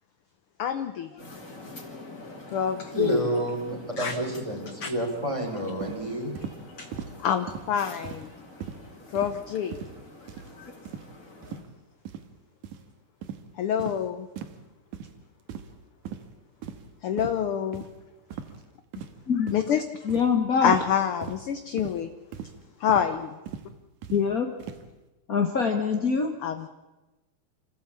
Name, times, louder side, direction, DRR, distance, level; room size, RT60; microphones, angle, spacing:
voice 1, 0.6-1.1 2.5-3.2 4.0-4.2 4.8-4.9 6.8-6.9 7.2-8.3 9.1-9.8 10.6-10.7 11.5-11.6 13.6-14.3 17.0-17.8 19.5-19.8 20.6-22.1 22.8-23.3 26.4-26.7, left 8 dB, 70° left, 9 dB, 1.4 m, -26 dB
sound 1, 1.2-11.6, left 2 dB, 25° left, 3.5 m, -46 dB
voice 2, 2.9-6.3, right 1 dB, 10° right, 1 dB, 3.9 m, -29 dB
sound 2, 5.8-6.0 6.4-6.6 6.9-7.2 7.5-7.7 8.0-8.3 8.6-8.8 9.2-9.4 9.7-10.0 10.3-10.5 10.9-11.1 11.4-11.7 12.1-12.3 12.6-12.8 13.2-13.4 13.8-14.0 14.4-14.6 14.9-15.1 15.5-15.8 16.0-16.2 16.6-16.9 17.2-17.4 17.7-17.9 18.3-18.6 18.9-19.2 19.5-19.7 20.1-20.3 20.7-20.9 21.2-21.4 21.8-22.0 22.3-22.5 22.9-23.1 23.5-23.7 24.0-24.2 24.6-24.8, right 8 dB, 80° right, 2.9 m, -38 dB
voice 3, 20.0-20.7 24.1-24.5 25.3-26.3, left 6 dB, 50° left, 4 dB, 1.0 m, -24 dB
26.5 x 15.0 x 8.5 m, 1.1 s
omnidirectional pair, 3.5 m